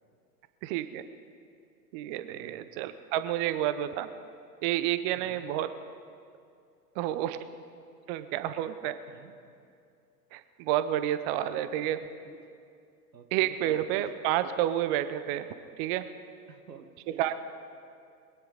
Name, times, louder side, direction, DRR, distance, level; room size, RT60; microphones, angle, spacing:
voice 1, 0.6-1.0 1.9-4.1 4.6-5.7 7.0-7.4 8.1-9.0 10.3-12.0 13.3-15.5 15.8-16.0 17.2-17.3, right 12 dB, 35° right, 12 dB, 0.7 m, -29 dB
voice 2, 2.3-2.7 5.1-5.5 9.1-9.4 11.5-12.4 13.1-14.1 16.5-17.3, right 6 dB, 85° right, 7 dB, 1.3 m, -51 dB
21.5 x 9.8 x 5.1 m, 2.4 s
figure-of-eight pair, 100°, 49 cm